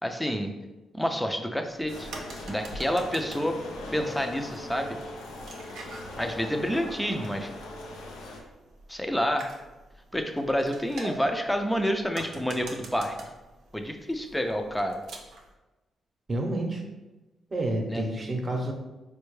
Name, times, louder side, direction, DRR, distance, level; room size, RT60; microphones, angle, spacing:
voice 1, 0.0-0.5 0.9-3.6 3.9-5.0 6.2-7.5 8.9-9.5 10.1-13.2 13.7-15.0 17.9-18.0, equal, 5° left, 4 dB, 0.5 m, -28 dB
sound 1, 1.7-15.5, right 2 dB, 75° right, 0.5 m, -46 dB
sound 2, 1.9-8.4, left 2 dB, 85° left, 0.5 m, -41 dB
voice 2, 16.3-16.8 17.5-18.7, right 1 dB, 40° right, 2 dB, 0.7 m, -29 dB
4.2 x 2.2 x 3.1 m, 1.1 s
supercardioid pair, 50°, 0 cm